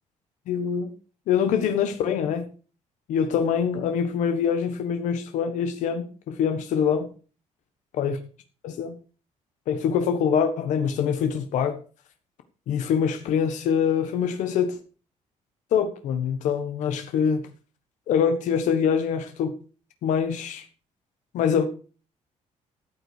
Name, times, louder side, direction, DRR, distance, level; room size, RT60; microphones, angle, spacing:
voice 1, 0.5-0.9 1.3-2.5 3.1-7.1 8.0-8.2 8.6-9.0 9.7-11.8 12.7-14.8 15.7-17.5 18.1-19.5 20.0-20.7 21.3-21.6, left 7 dB, 75° left, 1.4 m, -24 dB
14.0 x 8.4 x 4.9 m
cardioid pair, 175°, 13 cm